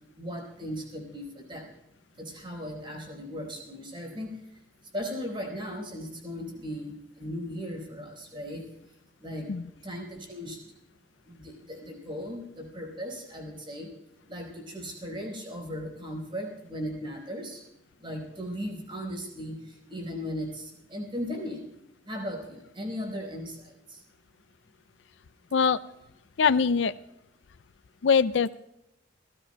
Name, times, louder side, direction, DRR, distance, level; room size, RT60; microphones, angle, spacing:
voice 1, 0.2-1.7 2.2-4.3 4.9-8.6 9.2-9.5 9.8-10.6 11.3-13.9 14.3-17.6 18.0-21.7 22.1-23.7, equal, 25° right, 0 dB, 4.5 m, -37 dB
voice 2, 26.4-26.9 28.0-28.5, left 6 dB, 70° left, 15 dB, 0.4 m, -22 dB
29.5 x 15.5 x 2.2 m, 0.87 s
head